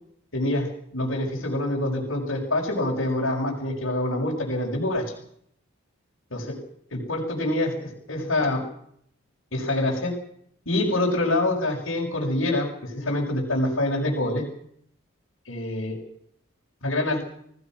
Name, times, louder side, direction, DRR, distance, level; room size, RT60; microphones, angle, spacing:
voice 1, 0.3-5.0 6.3-6.5 6.9-8.6 9.5-10.1 10.7-14.4 15.5-16.0 16.8-17.3, left 1 dB, 80° left, -4 dB, 6.1 m, -26 dB
26.5 x 18.0 x 6.2 m, 0.67 s
head